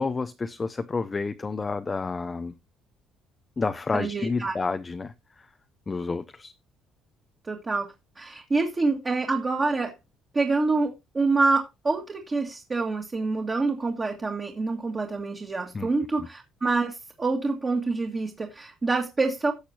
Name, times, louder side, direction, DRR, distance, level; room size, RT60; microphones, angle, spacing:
voice 1, 0.0-2.5 3.6-5.5 5.9-6.5 15.7-15.9 16.2-16.3, left 4 dB, 20° left, 0.7 m, -30 dB
voice 2, 3.9-4.6 7.5-9.9 10.3-19.5, right 3 dB, 25° right, 1.9 m, -26 dB
16.5 x 6.5 x 2.8 m
cardioid pair, 135°, 0 cm